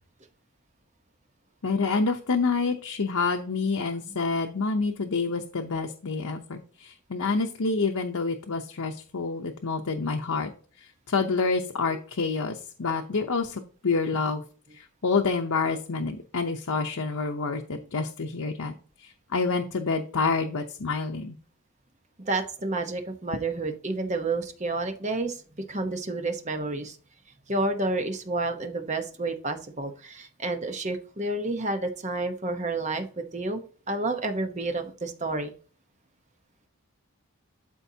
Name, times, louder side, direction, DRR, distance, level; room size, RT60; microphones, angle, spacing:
voice 1, 1.6-10.5 10.8-14.4 14.7-18.7 19.0-21.3, left 4 dB, 80° left, 3 dB, 0.7 m, -28 dB
voice 2, 22.2-27.0 27.5-33.6 33.9-35.5, right 2 dB, 30° right, 6 dB, 0.9 m, -30 dB
12.5 x 4.5 x 2.8 m, 0.40 s
head